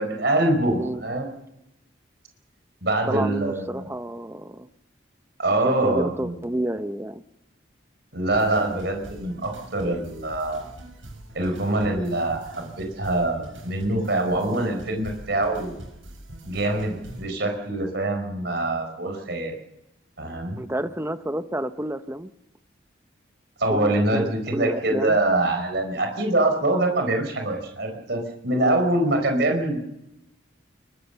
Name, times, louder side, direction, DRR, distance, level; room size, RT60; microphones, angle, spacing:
voice 1, 0.0-1.3 2.8-3.9 5.4-6.3 8.1-10.6 11.3-15.7 16.4-19.5 20.2-20.6 23.6-29.8, right 2 dB, 60° right, 4 dB, 4.6 m, -24 dB
voice 2, 0.7-1.0 3.1-4.7 5.6-7.2 20.6-22.3 23.7-25.2, right 1 dB, 15° right, 11 dB, 0.7 m, -30 dB
sound 1, 8.3-17.3, right 1 dB, 80° right, 6.8 m, -44 dB
24.0 x 23.0 x 7.0 m, 0.89 s
head